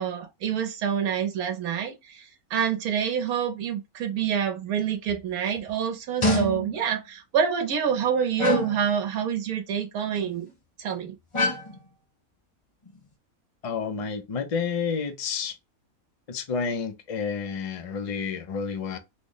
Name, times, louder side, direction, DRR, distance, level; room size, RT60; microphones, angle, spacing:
voice 1, 0.0-10.5 10.8-11.1, right 8 dB, 85° right, 1.2 m, -27 dB
sound 1, 5.1-5.2 5.6-5.7 6.2-6.9 8.4-8.9 10.2-10.5 11.3-11.8 12.9-13.0, left 1 dB, 30° left, 0.7 m, -26 dB
voice 2, 13.6-15.5 16.3-19.0, left 5 dB, 60° left, 0.3 m, -30 dB
3.2 x 2.1 x 3.7 m
omnidirectional pair, 1.5 m